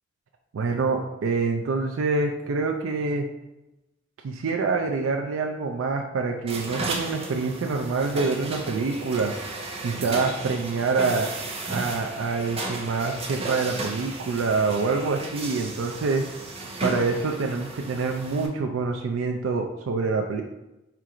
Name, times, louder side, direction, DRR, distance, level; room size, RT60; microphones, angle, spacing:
voice 1, 0.5-3.3 4.2-9.3 9.8-11.3 11.7-16.3 16.8-20.4, right 4 dB, 85° right, 3 dB, 0.4 m, -26 dB
sound 1, 6.5-18.5, right 2 dB, 30° right, 0.6 m, -34 dB
4.4 x 2.5 x 4.8 m, 0.96 s
head